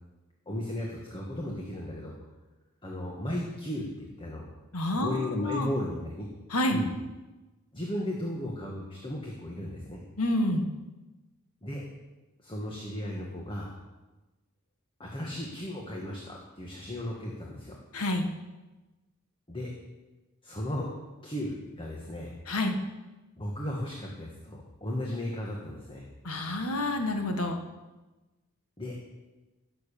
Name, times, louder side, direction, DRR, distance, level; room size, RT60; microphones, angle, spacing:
voice 1, 0.5-2.2 2.8-4.5 4.9-6.3 6.7-6.9 7.7-10.0 11.6-11.8 12.4-13.7 15.0-17.8 19.5-19.7 20.4-22.3 23.4-26.0 28.8-29.0, left 1 dB, 25° left, -2 dB, 1.7 m, -35 dB
voice 2, 4.7-5.7 6.5-6.8 10.2-10.7 17.9-18.3 22.5-22.8 26.2-27.6, left 1 dB, 85° left, 5 dB, 1.7 m, -28 dB
17.0 x 7.0 x 7.1 m, 1.1 s
head